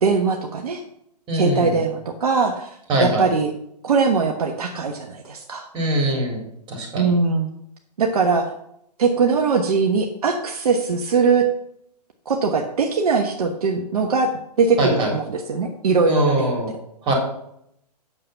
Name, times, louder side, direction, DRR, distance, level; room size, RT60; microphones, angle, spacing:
voice 1, 0.0-0.8 1.3-3.5 3.8-5.7 7.0-7.5 8.0-8.5 9.0-11.4 12.3-14.3 14.6-16.6, right 4 dB, 60° right, 3 dB, 1.2 m, -21 dB
voice 2, 1.3-1.8 2.9-3.3 5.7-6.4 6.7-7.1 14.8-15.1 16.1-16.7 17.0-17.1, right 1 dB, 20° right, 0 dB, 3.9 m, -22 dB
8.7 x 6.8 x 5.7 m, 0.75 s
figure-of-eight pair, 120°, 21 cm